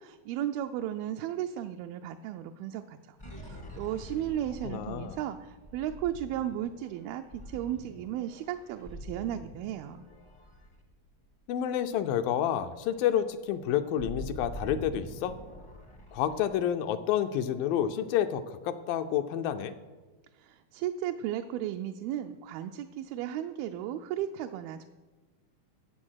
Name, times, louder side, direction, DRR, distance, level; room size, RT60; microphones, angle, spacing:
voice 1, 0.0-10.1 20.3-24.9, right 11 dB, 85° right, 6 dB, 2.4 m, -35 dB
sound 1, 3.2-11.6 12.0-12.2 12.4-16.6, equal, 30° left, 0.5 m, -45 dB
voice 2, 4.6-5.2 11.5-15.4 16.1-19.7, left 10 dB, 80° left, 9 dB, 2.3 m, -29 dB
14.0 x 8.0 x 6.3 m, 1.3 s
omnidirectional pair, 4.3 m